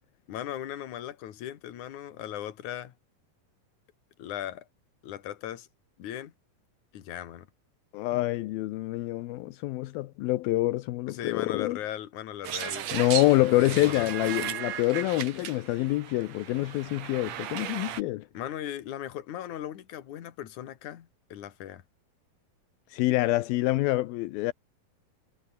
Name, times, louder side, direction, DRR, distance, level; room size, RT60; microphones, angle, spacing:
voice 1, 0.3-2.9 4.2-4.6 5.0-5.7 6.0-6.3 6.9-7.5 11.1-12.9 13.6-14.1 18.3-21.8, left 11 dB, 55° left, 3.0 m, -38 dB
voice 2, 7.9-11.8 12.9-18.3 22.9-24.5, left 17 dB, 80° left, 2.6 m, -26 dB
sound 1, 12.4-18.0, right 10 dB, 55° right, 2.3 m, -36 dB
omnidirectional pair, 4.4 m